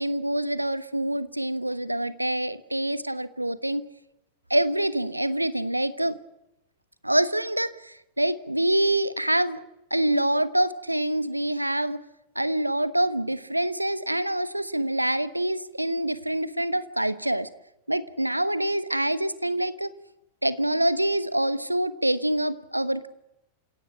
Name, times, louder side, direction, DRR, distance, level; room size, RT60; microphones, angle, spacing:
voice 1, 0.0-3.8 4.5-6.2 7.0-9.6 9.9-12.0 12.3-17.5 17.9-19.9 20.4-23.1, right 1 dB, 85° right, 16 dB, 1.1 m, -26 dB
29.0 x 17.0 x 7.5 m, 0.89 s
figure-of-eight pair, 90°, 0 cm